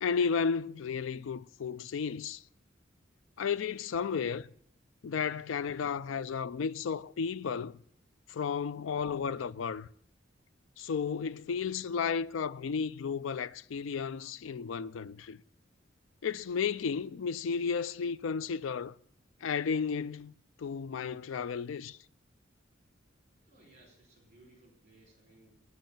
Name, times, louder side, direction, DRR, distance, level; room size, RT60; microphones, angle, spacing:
voice 1, 0.0-2.4 3.4-4.5 5.0-7.8 8.3-9.9 10.8-15.4 16.2-18.9 19.4-20.3 20.6-22.0, left 6 dB, 90° left, 0.4 m, -33 dB
voice 2, 23.3-25.6, right 2 dB, 40° right, 4.8 m, -61 dB
9.3 x 7.8 x 8.9 m
head